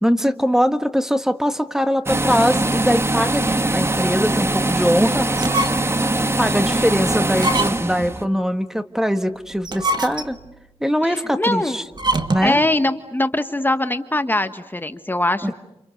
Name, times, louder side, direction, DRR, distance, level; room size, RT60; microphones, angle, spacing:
voice 1, 0.0-5.3 6.4-10.4 10.8-11.8 12.3-12.6 15.4-15.5, equal, 5° right, 9 dB, 1.7 m, -21 dB
hand dryer, 2.1-8.3, right 2 dB, 25° right, 1.5 m, -22 dB
sound 1, 5.4-6.0 6.5-6.6 7.3-8.0 9.5-10.5 11.9-12.6, right 2 dB, 45° right, 2.2 m, -24 dB
voice 2, 11.0-11.8 12.4-15.5, left 1 dB, 20° left, 9 dB, 1.5 m, -22 dB
29.5 x 29.0 x 6.7 m, 0.91 s
cardioid pair, 65°, 10 cm